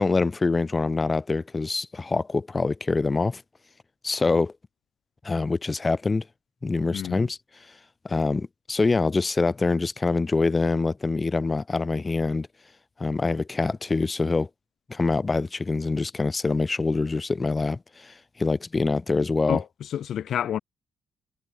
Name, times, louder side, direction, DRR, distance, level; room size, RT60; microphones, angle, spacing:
voice 1, 0.0-3.4 4.0-4.5 5.2-6.2 6.6-7.4 8.0-12.5 13.0-14.5 14.9-19.6, left 3 dB, 25° left, 5.7 m, -25 dB
voice 2, 19.5-20.6, left 10 dB, 65° left, 2.0 m, -29 dB
cardioid pair, 90°, 0 cm